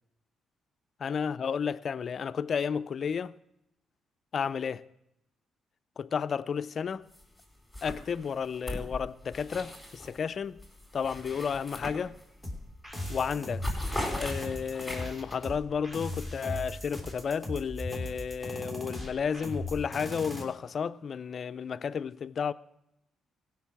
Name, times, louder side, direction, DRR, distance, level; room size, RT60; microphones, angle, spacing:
voice 1, 1.0-3.4 4.3-4.8 6.0-7.1 7.8-10.6 10.9-12.2 13.1-13.7 14.1-22.5, left 6 dB, 50° left, 0.4 m, -32 dB
sound 1, 7.1-7.4 7.7-10.2 10.6-12.5 12.8-13.1 13.3-15.3, left 1 dB, 5° left, 4.3 m, -38 dB
sound 2, 12.4-20.4, left 1 dB, 15° right, 2.8 m, -38 dB
16.0 x 5.9 x 7.3 m
cardioid pair, 90°, 0 cm